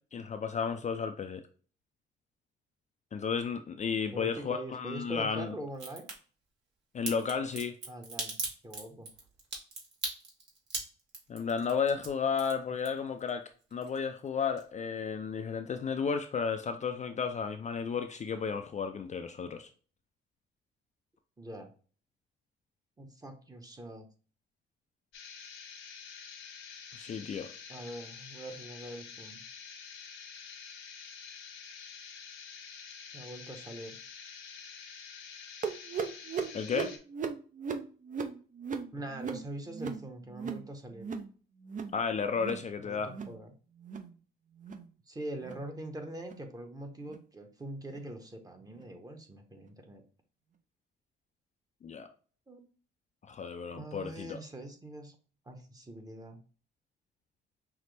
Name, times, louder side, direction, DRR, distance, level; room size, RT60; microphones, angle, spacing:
voice 1, 0.1-1.4 3.1-5.5 6.9-7.8 11.3-13.4 13.7-19.7 26.9-27.5 36.5-37.0 41.9-43.1 51.8-52.1 53.3-54.4, left 6 dB, 35° left, 6 dB, 0.4 m, -33 dB
voice 2, 4.1-6.1 7.9-8.4 8.6-9.1 21.4-21.7 23.0-24.1 27.7-29.4 33.1-34.0 38.9-41.1 42.8-43.5 45.1-50.0 52.5-52.6 53.7-55.1 55.5-56.4, right 1 dB, 20° right, 4 dB, 0.9 m, -43 dB
Crack, 5.7-6.1 7.0-13.3 13.6-14.3 14.6-14.7, right 3 dB, 60° right, 1.6 m, -38 dB
sound 1, 25.1-37.0, left 6 dB, 80° left, 0.8 m, -48 dB
sound 2, 35.6-40.7 40.9-41.3 41.6-42.0 42.3-42.7 43.0-43.4 43.8-44.1 44.6-44.9 45.4-45.6 46.2-46.4 47.0-47.2 47.9-48.0 48.8-48.9, right 6 dB, 40° right, 0.5 m, -38 dB
5.8 x 2.1 x 3.3 m, 0.39 s
cardioid pair, 90°, 20 cm